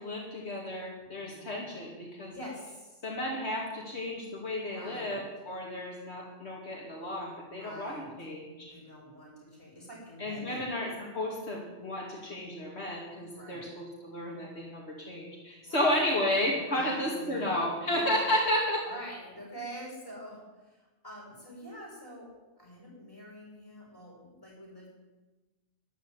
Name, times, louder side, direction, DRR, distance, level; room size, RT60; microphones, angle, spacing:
voice 1, 0.0-2.3 3.0-8.7 10.2-18.8, left 1 dB, 70° left, -3 dB, 3.0 m, -32 dB
voice 2, 1.0-1.6 2.3-3.0 4.7-5.2 7.5-8.1 8.7-10.7 13.3-13.7 15.6-16.0 16.4-18.1 18.8-20.8 21.0-24.9, equal, 20° left, -3 dB, 7.7 m, -46 dB
13.0 x 11.0 x 9.9 m, 1.1 s
omnidirectional pair, 1.2 m